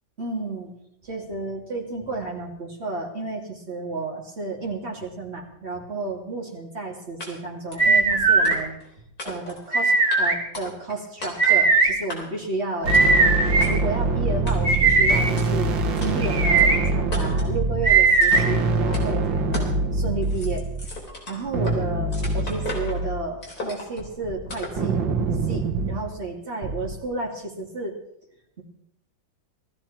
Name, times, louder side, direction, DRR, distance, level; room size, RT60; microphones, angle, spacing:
voice 1, 0.2-0.7 1.0-8.7 9.2-12.9 13.4-20.7 21.3-25.0 25.5-28.0, right 2 dB, 35° right, -1 dB, 3.1 m, -32 dB
sound 1, 7.2-7.3 7.7-7.9 8.4-8.9 9.2-9.7 10.1-10.2 10.5-11.0 11.2-11.6 12.1-12.5 12.9-13.2 13.6-13.7 14.5-14.8 15.4-15.5 16.0-16.1 16.6-16.7 17.1-17.5 18.2-18.6 18.9-19.1 19.5-19.8 20.1-21.8 22.1-23.0 23.4-24.0 24.5-24.8, left 2 dB, 50° left, 4.4 m, -36 dB
sound 2, 7.8-8.6 9.7-10.3 11.4-11.9 12.9-13.7 14.6-15.2 16.2-16.8 17.8-18.4, right 4 dB, 50° right, 3.2 m, -18 dB
sound 3, 12.8-20.9 21.5-23.2 24.0-26.1 26.6-26.9, right 3 dB, 80° right, 2.0 m, -25 dB
19.5 x 14.0 x 4.4 m, 0.78 s
omnidirectional pair, 2.0 m